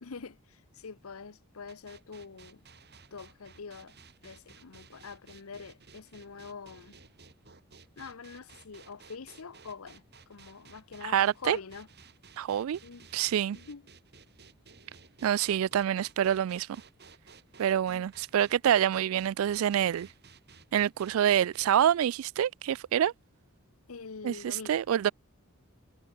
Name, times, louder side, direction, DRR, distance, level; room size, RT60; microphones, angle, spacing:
voice 1, 0.0-2.6 3.1-4.0 4.2-7.0 8.0-10.0 10.3-11.9 12.8-13.1 13.5-13.8 17.9-18.1 23.9-24.8, left 5 dB, 90° left, 0.8 m, -45 dB
sound 1, 1.7-21.7, right 5 dB, 50° right, 7.2 m, -56 dB
voice 2, 11.0-11.6 12.4-12.8 13.1-13.6 15.2-16.7 17.6-20.1 20.7-23.1 24.2-25.1, right 10 dB, 75° right, 0.3 m, -26 dB
head